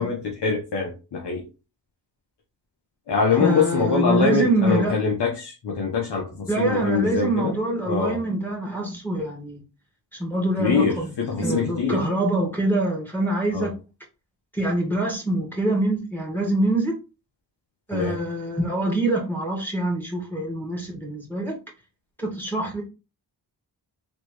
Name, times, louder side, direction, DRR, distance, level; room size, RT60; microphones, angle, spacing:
voice 1, 0.0-1.4 3.1-7.5 7.9-8.2 10.6-12.0 13.5-13.7 17.9-18.2, left 5 dB, 70° left, 1.3 m, -24 dB
voice 2, 3.4-5.0 6.5-9.6 10.2-13.7 14.5-17.0 17.9-21.6 22.2-22.8, right 1 dB, 5° left, 1.9 m, -25 dB
4.1 x 3.2 x 3.2 m
cardioid pair, 65°, 43 cm